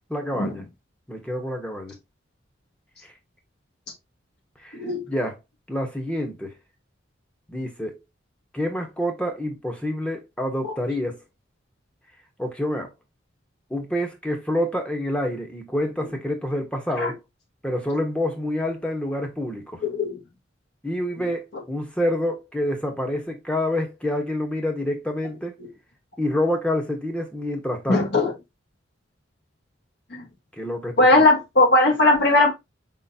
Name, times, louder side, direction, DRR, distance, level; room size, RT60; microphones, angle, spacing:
voice 1, 0.1-0.7 1.1-1.9 3.0-3.1 4.6-4.8 5.1-5.4 5.7-6.6 7.5-8.0 8.5-11.2 12.4-12.9 13.7-17.2 17.6-19.8 20.8-25.6 26.2-28.1 30.5-31.3, left 1 dB, 5° left, 1.0 m, -27 dB
voice 2, 19.8-20.2 27.9-28.3 30.1-30.2 31.0-32.5, left 2 dB, 60° left, 1.3 m, -18 dB
5.1 x 3.8 x 2.7 m
head